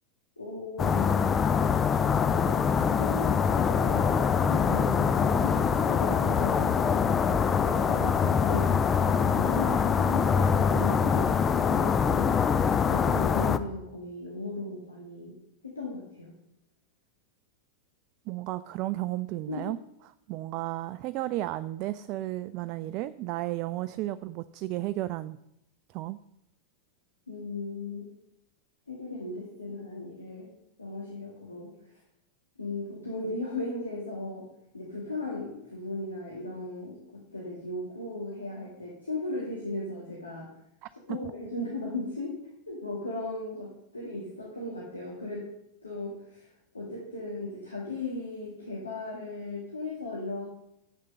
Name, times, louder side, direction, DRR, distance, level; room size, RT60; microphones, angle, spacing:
voice 1, 0.4-1.4 2.3-12.4 12.8-15.3 15.6-16.3 19.5-19.6 27.3-28.1 28.9-30.5 30.8-31.7 32.6-34.5 34.7-40.5 41.1-42.4 42.7-45.5 45.8-46.5 46.7-50.4, left 2 dB, 80° left, -4 dB, 2.0 m, -36 dB
sound 1, 0.8-13.6, left 6 dB, 20° left, 0.5 m, -24 dB
voice 2, 18.3-19.8 20.3-25.4 25.9-26.2 41.1-41.2, right 16 dB, 40° right, 13 dB, 0.3 m, -33 dB
7.5 x 6.5 x 6.8 m, 0.82 s
figure-of-eight pair, 90°, 0 cm